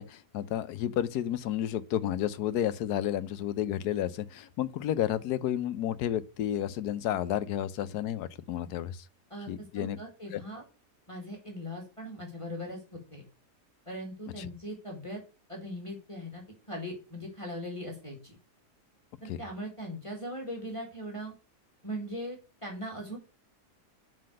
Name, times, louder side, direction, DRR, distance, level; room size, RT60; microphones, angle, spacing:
voice 1, 0.0-9.0 9.5-10.0 10.3-10.4 14.4-14.5 19.3-19.4, left 11 dB, 80° left, 1.2 m, -31 dB
voice 2, 9.3-10.6 11.1-13.2 13.9-15.2 15.5-18.4 19.2-21.3 21.8-23.2, equal, 20° left, 2.2 m, -40 dB
7.6 x 5.1 x 6.3 m
omnidirectional pair, 1.7 m